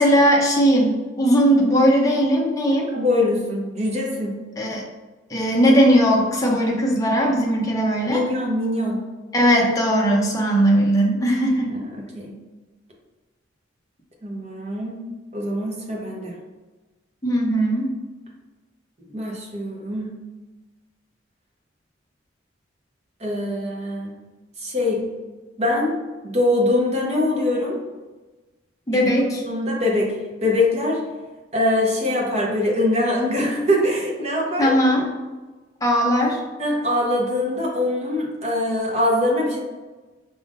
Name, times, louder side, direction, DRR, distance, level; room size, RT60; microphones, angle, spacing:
voice 1, 0.0-2.9 4.6-4.8 5.3-8.2 9.3-11.7 17.2-17.9 28.9-29.4 34.6-35.0 35.8-36.4, equal, 20° left, -2 dB, 0.7 m, -18 dB
voice 2, 2.9-4.4 8.1-9.0 11.7-12.3 14.2-15.0 15.3-16.3 19.0-20.1 23.2-24.2 24.6-25.1 25.6-25.9 26.2-27.8 28.9-29.1 29.5-31.0 31.5-34.7 36.6-39.6, left 1 dB, 35° right, -1 dB, 0.9 m, -23 dB
5.1 x 3.5 x 2.5 m, 1.2 s
head